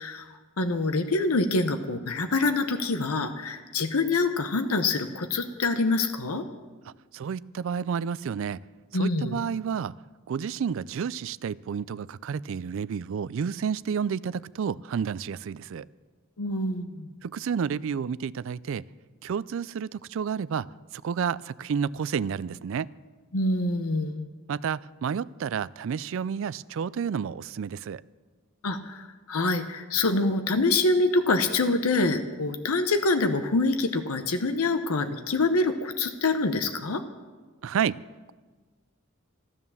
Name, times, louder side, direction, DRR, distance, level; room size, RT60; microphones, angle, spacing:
voice 1, 0.0-6.4 8.9-9.4 16.4-17.1 23.3-24.3 28.6-37.0, left 3 dB, 85° left, 0.8 m, -26 dB
voice 2, 7.1-8.6 9.0-9.9 10.3-15.9 17.2-18.9 19.2-20.7 20.9-22.9 24.5-28.0 37.6-38.0, right 7 dB, 65° right, 0.3 m, -30 dB
13.0 x 12.5 x 7.1 m
head